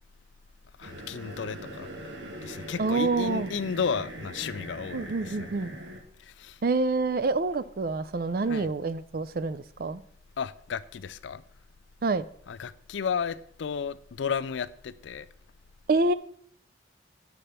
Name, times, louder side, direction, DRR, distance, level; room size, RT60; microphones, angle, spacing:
voice 1, 0.8-1.9 2.4-5.5 6.2-6.6 8.5-8.7 10.4-11.4 12.5-15.3, left 6 dB, 90° left, 0.4 m, -33 dB
sound 1, 0.8-6.0, right 1 dB, 90° right, 1.4 m, -41 dB
voice 2, 2.8-3.5 4.9-5.7 6.6-10.0 12.0-12.2 15.9-16.1, right 3 dB, 50° right, 0.4 m, -27 dB
8.3 x 4.4 x 6.7 m
head